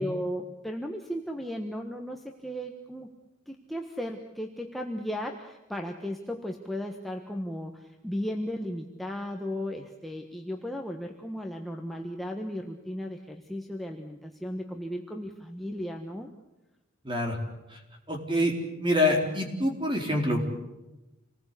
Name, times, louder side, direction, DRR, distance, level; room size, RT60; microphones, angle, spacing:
voice 1, 0.0-3.1 3.5-16.3, equal, ahead, 1 dB, 1.3 m, -35 dB
voice 2, 17.0-17.4 17.7-17.8 18.1-18.5 18.8-20.4, left 1 dB, 25° right, 3 dB, 4.0 m, -26 dB
27.5 x 19.5 x 8.4 m, 1.0 s
head